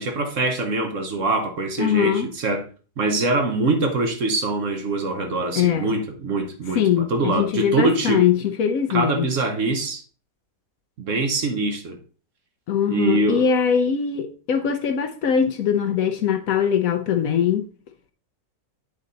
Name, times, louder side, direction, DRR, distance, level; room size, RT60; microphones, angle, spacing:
voice 1, 0.0-2.6 3.0-8.2 8.9-10.0 11.0-12.0 12.9-13.5, right 2 dB, 55° right, 1.2 m, -24 dB
voice 2, 1.8-2.3 5.5-5.9 6.7-9.3 12.7-17.7, left 8 dB, 65° left, 1.0 m, -21 dB
8.4 x 4.1 x 3.9 m
omnidirectional pair, 1.7 m